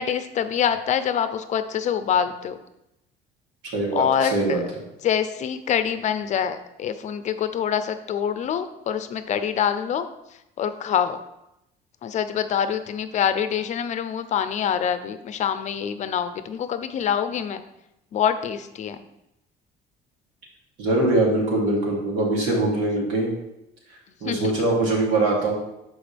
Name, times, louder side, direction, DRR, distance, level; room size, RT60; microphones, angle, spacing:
voice 1, 0.0-2.6 3.9-4.6 5.0-10.1 10.6-11.2 12.0-17.6 18.1-19.0 24.2-24.5, left 8 dB, 40° left, 10 dB, 0.6 m, -25 dB
voice 2, 3.7-4.6 20.8-23.3 24.2-25.6, right 2 dB, 80° right, -2 dB, 3.0 m, -22 dB
12.5 x 4.9 x 3.5 m, 0.87 s
cardioid pair, 150°, 18 cm